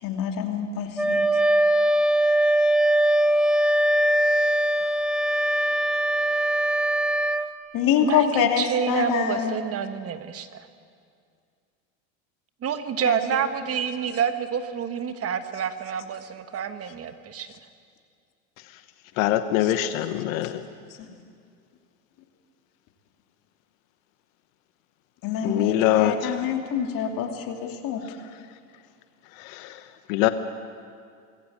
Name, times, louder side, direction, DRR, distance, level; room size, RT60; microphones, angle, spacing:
voice 1, 0.0-1.4 7.7-9.6 13.1-13.2 19.6-20.1 20.3-20.5 21.0-21.1 25.2-28.0, left 8 dB, 50° left, 3 dB, 2.8 m, -26 dB
Wind instrument woodwind instrument, 1.0-7.5, right 1 dB, ahead, 0.8 m, -21 dB
voice 2, 8.0-10.7 12.6-17.5, right 7 dB, 35° right, 9 dB, 1.3 m, -28 dB
voice 3, 19.2-20.6 25.4-26.3 29.4-29.8 30.1-30.3, left 13 dB, 75° left, 10 dB, 1.1 m, -23 dB
20.0 x 15.5 x 8.7 m, 2.3 s
supercardioid pair, 100°, 41 cm